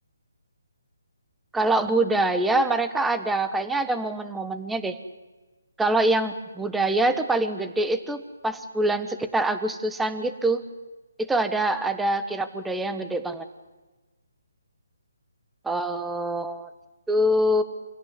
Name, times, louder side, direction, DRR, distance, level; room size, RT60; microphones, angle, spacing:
voice 1, 1.5-5.0 5.8-10.6 11.3-13.4 15.6-16.7 17.1-17.6, right 1 dB, 5° right, 11 dB, 1.2 m, -24 dB
26.0 x 17.0 x 9.8 m, 1.1 s
figure-of-eight pair, 155°, 0 cm